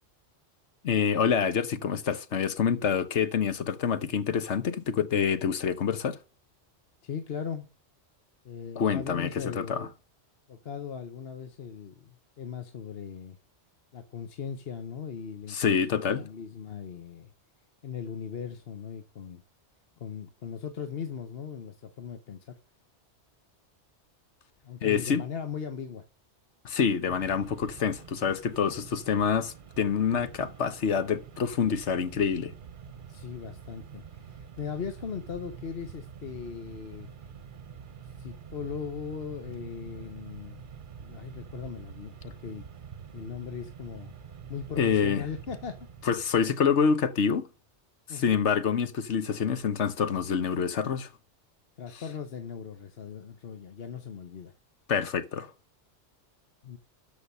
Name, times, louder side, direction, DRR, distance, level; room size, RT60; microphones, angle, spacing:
voice 1, 0.8-6.2 8.8-9.9 15.5-16.2 24.8-25.2 26.6-32.5 44.8-45.2 46.0-47.4 48.1-51.1 54.9-55.5, left 7 dB, 85° left, 1.3 m, -27 dB
voice 2, 7.0-7.7 8.4-9.9 10.5-13.4 13.9-17.3 17.8-19.4 20.0-22.6 24.6-26.0 33.1-37.1 38.2-40.6 41.0-42.7 43.1-44.1 44.5-45.9 48.1-48.4 51.8-54.5 56.6-56.8, left 7 dB, 60° left, 1.2 m, -39 dB
Mechanisms, 27.0-46.5, right 7 dB, 50° right, 1.0 m, -46 dB
13.0 x 5.2 x 5.5 m
omnidirectional pair, 1.2 m